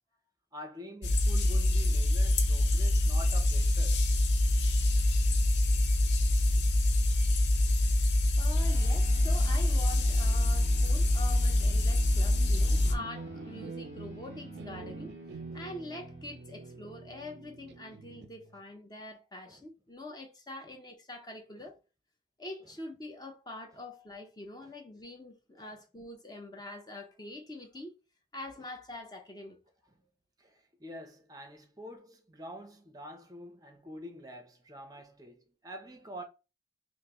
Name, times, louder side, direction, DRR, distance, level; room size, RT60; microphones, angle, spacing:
voice 1, 0.5-4.0 15.5-15.6 19.5-19.6 21.6-21.7 24.6-24.7 25.5-25.7 30.4-36.2, equal, 20° right, 0.6 m, -47 dB
sound 1, 1.0-12.9, left 1 dB, 90° left, 0.6 m, -25 dB
voice 2, 8.4-15.1 15.5-21.8 22.4-27.9 28.3-29.6, left 1 dB, 25° left, 0.7 m, -44 dB
sound 2, 8.5-18.3, left 1 dB, 45° left, 1.6 m, -50 dB
sound 3, 12.3-18.6, right 4 dB, 75° right, 0.4 m, -46 dB
5.5 x 2.0 x 2.9 m
head